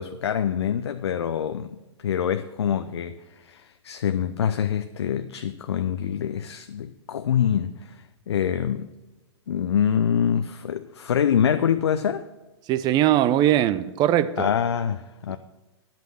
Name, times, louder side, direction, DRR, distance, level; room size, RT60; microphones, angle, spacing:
voice 1, 0.0-8.0 8.3-8.9 9.5-12.3 14.4-15.4, left 8 dB, 65° left, 0.6 m, -25 dB
voice 2, 12.7-14.5, right 12 dB, 30° right, 0.6 m, -20 dB
10.5 x 8.2 x 6.4 m
figure-of-eight pair, 105°, 15 cm